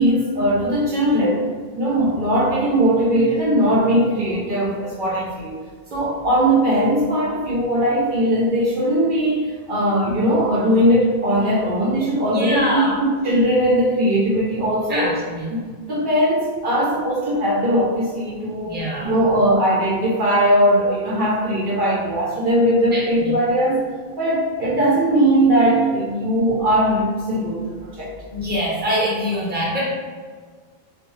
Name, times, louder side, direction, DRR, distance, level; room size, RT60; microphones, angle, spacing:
voice 1, 0.0-1.5 1.8-5.6 5.9-15.1 15.5-15.6 15.9-18.8 19.0-23.8 24.2-28.1, right 1 dB, 60° right, -6 dB, 0.7 m, -19 dB
voice 2, 12.2-13.0 14.9-15.5 18.6-19.1 22.9-23.3 28.3-29.8, equal, 10° right, -7 dB, 0.6 m, -24 dB
2.5 x 2.2 x 3.0 m, 1.5 s
omnidirectional pair, 1.0 m